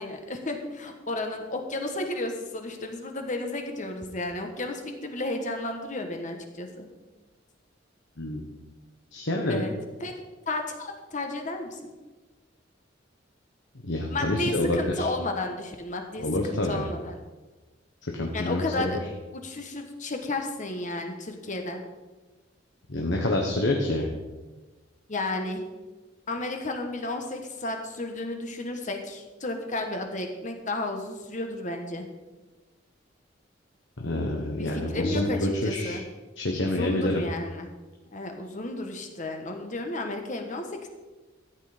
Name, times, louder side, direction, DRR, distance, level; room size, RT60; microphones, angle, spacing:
voice 1, 0.0-6.9 9.5-9.7 10.0-10.2 10.5-11.9 14.1-17.1 18.3-19.0 19.4-21.8 25.1-25.6 26.3-32.1 34.6-36.0 36.6-37.7 38.1-40.9, left 2 dB, 40° left, 4 dB, 1.4 m, -32 dB
voice 2, 9.1-9.6 13.8-15.1 16.2-16.8 18.2-19.0 22.9-24.1 34.0-36.0 36.4-37.2, left 1 dB, 70° left, 0 dB, 1.3 m, -27 dB
13.5 x 8.4 x 5.1 m, 1.2 s
head